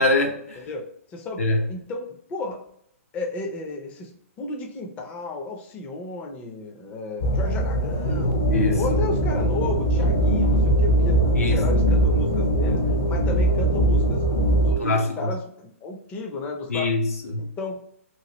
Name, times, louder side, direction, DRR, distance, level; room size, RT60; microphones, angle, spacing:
voice 1, 0.0-0.7 1.4-1.6 8.5-9.0 11.3-11.6 14.8-15.3 16.7-17.5, left 2 dB, 90° left, 2 dB, 0.8 m, -23 dB
voice 2, 0.6-2.7 3.1-8.5 8.8-12.8 13.1-14.2 14.6-16.9 17.4-17.8, left 3 dB, 20° left, 1 dB, 0.5 m, -33 dB
sound 1, 7.2-14.7, right 1 dB, 65° left, 0.7 m, -21 dB
sound 2, 8.0-15.0, right 3 dB, 70° right, 0.4 m, -31 dB
3.0 x 2.4 x 2.9 m, 0.70 s
hypercardioid pair, 145°, 8 cm